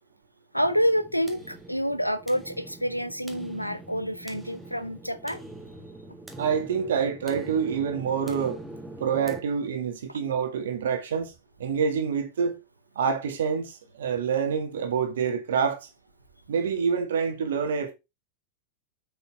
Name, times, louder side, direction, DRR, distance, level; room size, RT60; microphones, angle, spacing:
voice 1, 0.5-5.4, equal, 90° left, 0.8 m, -28 dB
sound 1, 0.5-9.4, right 2 dB, 5° right, 1.7 m, -43 dB
voice 2, 6.4-8.6 9.0-11.3 11.6-12.6 13.0-15.9 16.5-17.9, right 6 dB, 60° right, 2.0 m, -27 dB
6.7 x 6.4 x 4.3 m
figure-of-eight pair, 90°, 0 cm